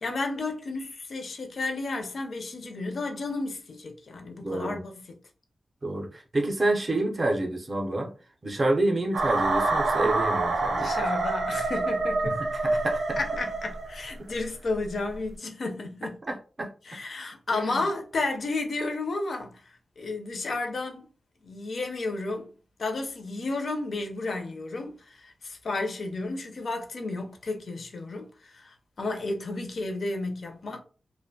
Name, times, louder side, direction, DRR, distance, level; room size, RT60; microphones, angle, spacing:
voice 1, 0.0-5.2 10.7-12.4 13.2-16.2 16.8-21.1 21.4-22.5 22.8-30.8, left 3 dB, 60° left, 0.4 m, -32 dB
voice 2, 4.4-4.8 5.8-8.1 8.4-10.9 12.5-13.2 16.3-16.7 17.5-17.8, right 2 dB, 35° right, 0.5 m, -28 dB
sound 1, 9.1-14.1, right 2 dB, 85° right, 0.4 m, -27 dB
2.4 x 2.1 x 2.6 m
wide cardioid pair, 170°, 0 cm